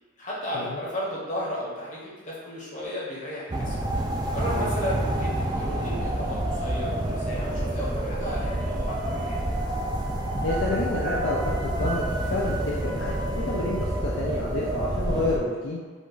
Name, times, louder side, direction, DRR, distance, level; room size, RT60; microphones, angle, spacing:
voice 1, 0.2-9.4, left 1 dB, 35° left, -6 dB, 1.1 m, -34 dB
sound 1, 3.5-15.4, right 1 dB, 20° right, 0.3 m, -28 dB
Wind instrument woodwind instrument, 8.2-14.0, right 2 dB, 50° right, 0.7 m, -41 dB
voice 2, 10.4-15.8, left 2 dB, 60° left, -5 dB, 0.5 m, -29 dB
5.1 x 2.4 x 3.9 m, 1.5 s
head